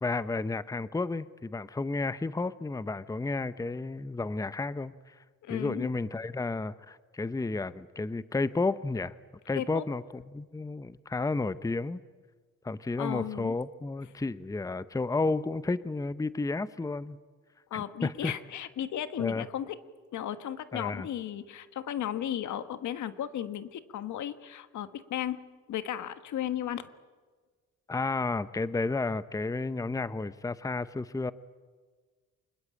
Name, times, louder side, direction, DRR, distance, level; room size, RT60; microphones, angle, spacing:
voice 1, 0.0-5.2 5.5-9.1 9.5-12.0 12.6-17.2 17.7-18.3 19.2-19.5 20.7-21.1 27.9-31.3, left 3 dB, 10° left, 15 dB, 0.7 m, -32 dB
voice 2, 5.4-5.9 9.5-9.8 13.0-13.5 17.7-19.7 20.1-25.4 25.7-26.9, left 11 dB, 70° left, 12 dB, 1.5 m, -35 dB
26.0 x 21.0 x 8.9 m, 1.4 s
cardioid pair, 90°, 30 cm